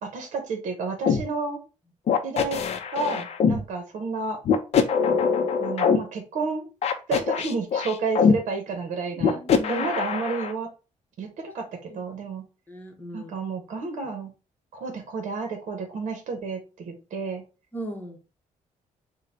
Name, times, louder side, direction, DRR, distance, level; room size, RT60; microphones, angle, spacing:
voice 1, 0.0-1.6 2.2-2.6 2.9-4.4 5.6-6.7 7.1-9.4 9.7-10.7 11.2-12.4 13.1-14.3 14.7-17.4, right 4 dB, 70° right, 4 dB, 1.0 m, -31 dB
sound 1, 1.0-1.2 2.1-3.6 4.4-6.0 6.8-8.3 9.2-10.5, left 6 dB, 55° left, 0.5 m, -22 dB
voice 2, 9.2-9.9 11.9-12.0 12.7-13.4 17.7-18.2, right 2 dB, 15° left, 3 dB, 0.9 m, -37 dB
3.8 x 2.2 x 4.2 m, 0.31 s
cardioid pair, 155°, 13 cm